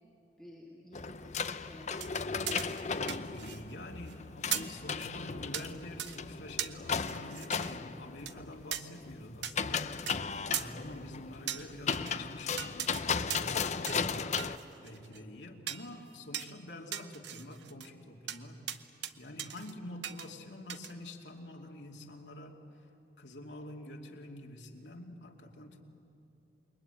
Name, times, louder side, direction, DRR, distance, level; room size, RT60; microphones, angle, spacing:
voice 1, 0.4-2.6, left 1 dB, ahead, -3 dB, 2.3 m, -54 dB
sound 1, 0.9-14.6, left 5 dB, 40° left, 0.6 m, -36 dB
sound 2, 2.0-3.7 4.0-4.1 4.5-4.8 5.5-5.7 6.0-6.2 6.6-7.8 8.3-8.4 8.7-8.8 9.4-9.5 10.1-10.2 10.5-10.7 11.5-12.2 12.6-13.0 13.3-13.6 13.9-14.1 14.4-15.2 15.7-15.9 16.3-16.5 16.9-17.9 18.3-18.4 18.7-19.1 19.4-19.7 20.0-20.3 20.7-20.9, right 10 dB, 85° right, 1.0 m, -39 dB
voice 2, 3.1-14.4 14.8-18.6 19.2-22.6 23.2-25.8, left 1 dB, 85° left, 1 dB, 2.6 m, -47 dB
28.0 x 22.0 x 9.1 m, 3.0 s
head